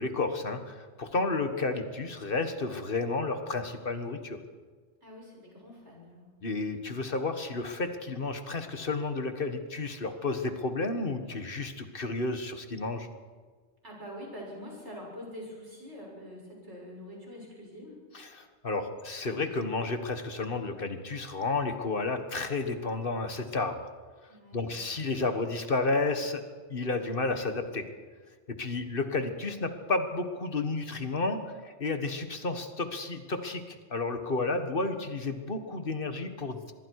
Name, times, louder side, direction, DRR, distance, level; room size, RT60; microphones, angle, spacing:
voice 1, 0.0-4.4 6.4-13.1 18.1-23.9 24.5-26.4 26.7-27.9 28.5-36.7, left 3 dB, 55° left, 7 dB, 1.7 m, -31 dB
voice 2, 5.0-6.2 13.8-18.0 24.3-24.7, equal, 90° right, -3 dB, 7.4 m, -45 dB
25.0 x 21.5 x 4.8 m, 1.5 s
omnidirectional pair, 1.1 m